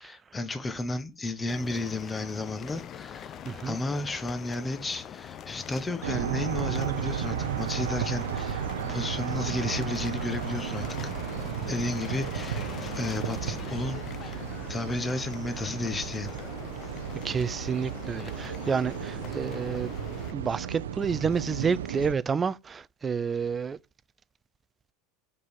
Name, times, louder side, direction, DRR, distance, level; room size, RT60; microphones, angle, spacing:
voice 1, 0.0-11.1 11.4-14.4 14.7-16.4, left 2 dB, 20° left, 1.2 m, -33 dB
sound 1, 1.5-20.3, left 9 dB, 40° left, 0.6 m, -42 dB
voice 2, 3.4-3.8 17.2-19.9 20.3-23.8, right 6 dB, 25° right, 0.5 m, -29 dB
sound 2, 6.0-22.1, right 9 dB, 90° right, 0.6 m, -34 dB
5.6 x 5.0 x 6.3 m
hypercardioid pair, 95°, 0 cm